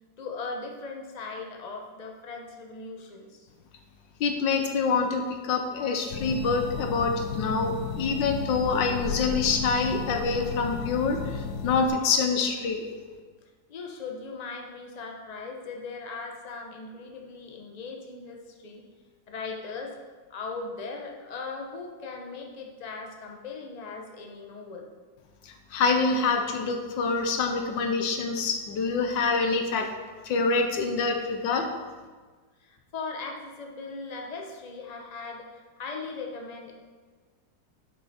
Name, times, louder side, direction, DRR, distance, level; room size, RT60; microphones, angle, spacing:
voice 1, 0.2-3.5 13.7-18.8 19.3-19.9 20.3-24.9 32.6-36.7, left 4 dB, 25° left, 1 dB, 1.0 m, -39 dB
voice 2, 4.2-12.9 25.4-29.9 30.2-31.7, left 4 dB, 85° left, 5 dB, 1.7 m, -26 dB
sound 1, 6.1-11.9, left 5 dB, 65° left, 1.2 m, -34 dB
11.5 x 6.3 x 4.4 m, 1.4 s
omnidirectional pair, 1.9 m